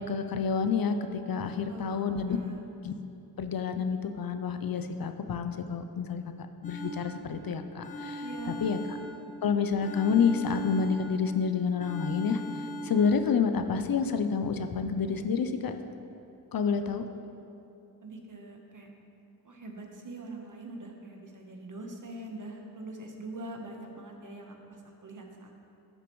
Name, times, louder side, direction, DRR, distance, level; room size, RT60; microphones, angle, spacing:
voice 1, 0.0-2.4 2.8-2.9 3.4-8.2 8.6-9.0 9.4-12.4 12.8-15.8 16.5-17.0, left 6 dB, 65° left, 8 dB, 0.6 m, -29 dB
voice 2, 1.7-2.6 8.2-8.7 18.0-18.9 19.4-24.6 24.8-25.6, right 2 dB, 55° right, 1 dB, 1.2 m, -43 dB
sound 1, 6.6-7.4 7.8-9.4 9.8-11.4 11.8-13.2, equal, 20° left, 1.5 m, -40 dB
11.0 x 6.7 x 3.1 m, 2.8 s
cardioid pair, 50°, 38 cm